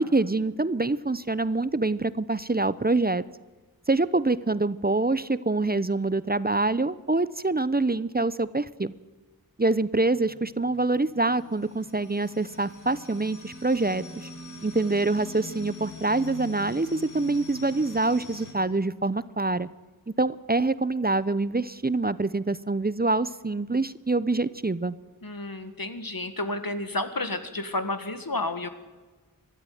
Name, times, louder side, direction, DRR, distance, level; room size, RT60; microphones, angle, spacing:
voice 1, 0.0-3.2 3.9-8.9 9.6-14.3 14.6-19.7 20.1-25.0, right 2 dB, 25° right, 17 dB, 0.6 m, -25 dB
sound 1, 10.2-18.5, left 1 dB, 55° left, 4.6 m, -44 dB
voice 2, 25.2-28.7, left 2 dB, 75° left, 9 dB, 1.8 m, -31 dB
23.0 x 13.0 x 9.3 m, 1.3 s
wide cardioid pair, 45°, 35 cm